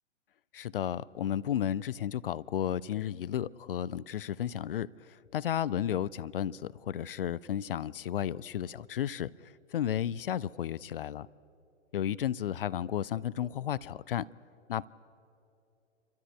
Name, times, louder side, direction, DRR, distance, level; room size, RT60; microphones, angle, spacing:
voice 1, 0.5-11.3 11.9-14.3 14.7-14.9, left 10 dB, 50° left, 20 dB, 0.5 m, -33 dB
28.0 x 13.5 x 9.4 m, 2.7 s
figure-of-eight pair, 110°, 37 cm